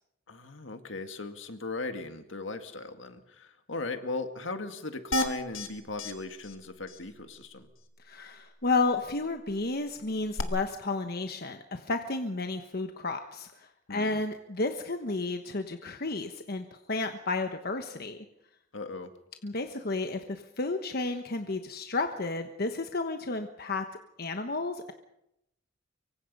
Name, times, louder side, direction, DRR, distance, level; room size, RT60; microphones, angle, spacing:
voice 1, 0.3-7.7 13.9-14.2 18.7-19.1, left 3 dB, 70° left, 7 dB, 2.0 m, -38 dB
sound 1, 5.1-5.7 6.0-6.1 6.4-6.5 6.9-7.0 10.4-10.5, left 1 dB, 90° left, 2.0 m, -30 dB
voice 2, 8.0-18.2 19.4-23.8 24.2-24.9, left 3 dB, 50° left, 6 dB, 1.2 m, -32 dB
25.0 x 24.0 x 5.5 m, 0.86 s
head